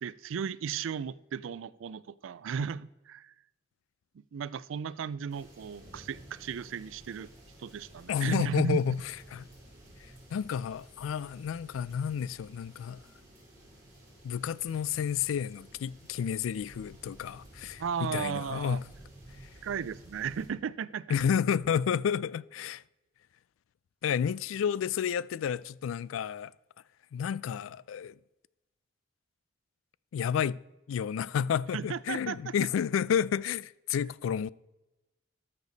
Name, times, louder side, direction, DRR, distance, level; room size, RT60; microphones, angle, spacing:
voice 1, 0.0-3.3 4.3-7.3 7.6-8.8 17.8-18.8 19.6-21.2 31.7-32.5, right 7 dB, 85° right, 0.4 m, -35 dB
sound 1, 5.3-20.5, right 1 dB, 20° right, 4.2 m, -54 dB
voice 2, 8.1-9.0 9.3-9.4 10.3-13.0 14.2-18.8 21.1-22.8 24.0-26.5 27.1-28.1 30.1-30.6 30.9-34.5, left 8 dB, 90° left, 0.3 m, -30 dB
13.0 x 6.6 x 4.0 m
head